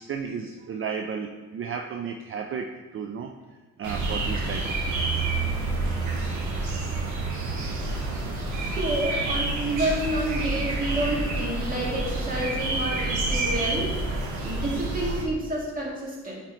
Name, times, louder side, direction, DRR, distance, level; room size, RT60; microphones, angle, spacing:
voice 1, 0.0-3.3 3.8-5.2, right 6 dB, 45° right, 4 dB, 0.5 m, -34 dB
sound 1, 3.8-15.2, right 2 dB, 75° right, 1.4 m, -28 dB
voice 2, 8.7-13.9 14.4-16.3, right 1 dB, 30° right, -4 dB, 2.2 m, -29 dB
8.9 x 4.5 x 3.2 m, 1.4 s
cardioid pair, 90°, 30 cm